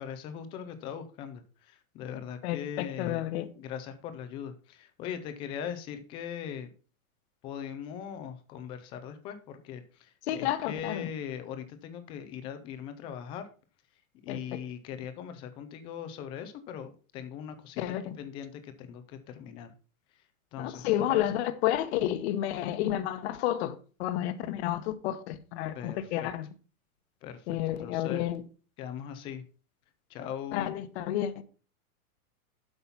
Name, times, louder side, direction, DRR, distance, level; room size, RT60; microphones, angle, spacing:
voice 1, 0.0-3.3 3.6-6.7 7.4-13.5 14.2-19.7 20.2-20.3 20.5-21.4 25.7-26.3 27.2-28.2 28.8-29.4 30.1-30.8, left 8 dB, 15° left, 0.3 m, -40 dB
voice 2, 2.4-3.5 10.3-11.1 14.3-14.4 17.8-18.2 20.6-26.5 27.5-28.4 30.5-31.4, left 12 dB, 50° left, 1.0 m, -31 dB
8.2 x 5.5 x 5.7 m
supercardioid pair, 145°, 43 cm